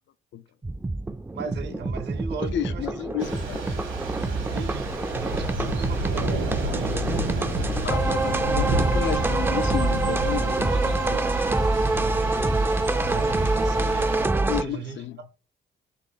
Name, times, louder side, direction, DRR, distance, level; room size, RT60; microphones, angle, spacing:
sound 1, 0.6-14.6, right 2 dB, 10° right, 0.3 m, -26 dB
voice 1, 1.3-3.0 4.4-7.7 12.0-12.6 13.0-15.0, right 6 dB, 60° right, 0.7 m, -37 dB
voice 2, 2.4-3.8 7.8-11.3 14.5-15.3, left 11 dB, 65° left, 0.4 m, -32 dB
Thunder / Rain, 3.2-14.3, right 1 dB, 75° right, 1.5 m, -30 dB
4.1 x 2.7 x 3.9 m
cardioid pair, 90°, 20 cm